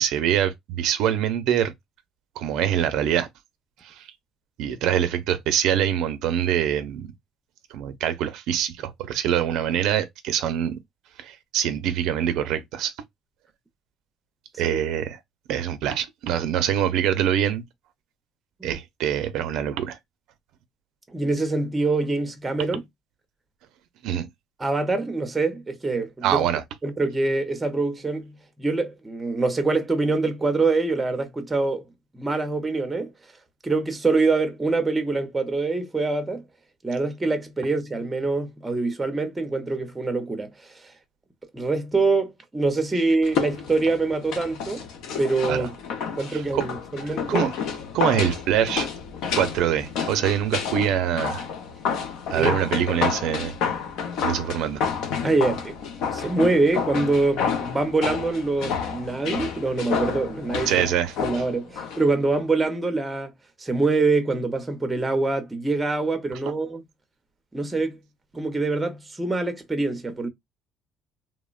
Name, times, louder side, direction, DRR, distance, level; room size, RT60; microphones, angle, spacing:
voice 1, 0.0-1.7 2.4-3.3 3.8-4.1 4.6-7.1 7.7-10.8 11.2-12.9 14.6-15.2 15.5-17.6 18.6-20.0 24.0-24.3 26.2-26.6 45.5-45.7 46.3-46.6 47.0-47.5 47.9-48.9 49.3-51.4 52.3-53.5 54.2-54.8 60.7-61.1, right 10 dB, 70° right, 0.5 m, -24 dB
voice 2, 21.1-22.8 24.6-26.4 26.8-31.9 32.1-33.1 33.6-36.4 36.8-40.8 41.5-44.8 45.2-45.7 46.2-47.5 52.3-52.6 55.2-55.8 56.1-60.9 61.2-63.3 63.6-66.8 67.5-68.0 68.3-70.3, right 3 dB, 10° right, 0.5 m, -25 dB
sound 1, 43.2-62.0 62.3-62.4, left 6 dB, 70° left, 0.6 m, -30 dB
3.1 x 2.1 x 2.3 m
cardioid pair, 165°, 0 cm